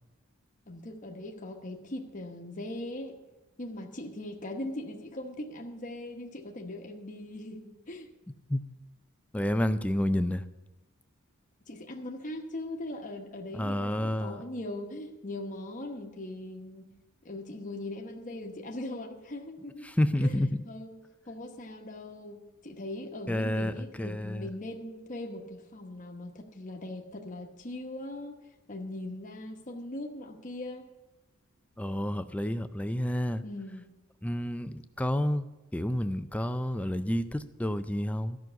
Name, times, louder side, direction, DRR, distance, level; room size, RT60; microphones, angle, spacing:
voice 1, 0.7-3.2 3.6-8.1 11.7-16.9 17.2-19.9 20.2-20.4 20.6-20.9 21.3-28.4 28.7-30.8 33.4-33.8, left 1 dB, 35° left, 1.1 m, -40 dB
voice 2, 9.3-10.4 13.5-14.4 19.8-20.6 23.3-24.5 31.8-33.4 34.2-35.5 35.7-38.4, left 1 dB, 5° left, 0.4 m, -29 dB
13.0 x 6.2 x 8.0 m
head